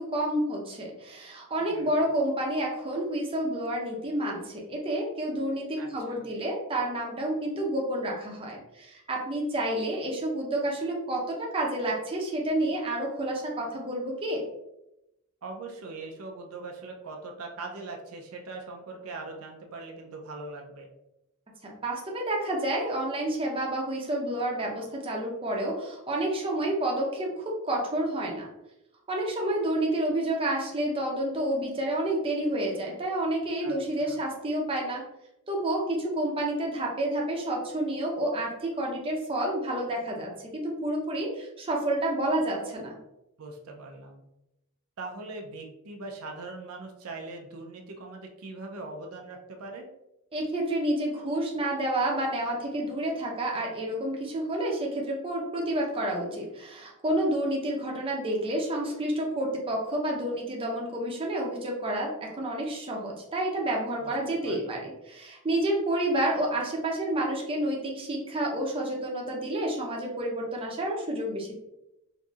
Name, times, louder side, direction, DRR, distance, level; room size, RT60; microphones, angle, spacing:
voice 1, 0.0-14.4 21.6-28.5 29.1-35.0 35.5-42.9 50.3-71.5, right 1 dB, 25° right, -1 dB, 0.6 m, -29 dB
voice 2, 1.6-2.0 5.8-6.3 15.4-20.9 33.6-34.2 43.4-44.2 45.0-49.8 64.0-64.7, right 3 dB, 80° right, 2 dB, 0.5 m, -41 dB
3.9 x 2.6 x 2.3 m, 0.88 s
head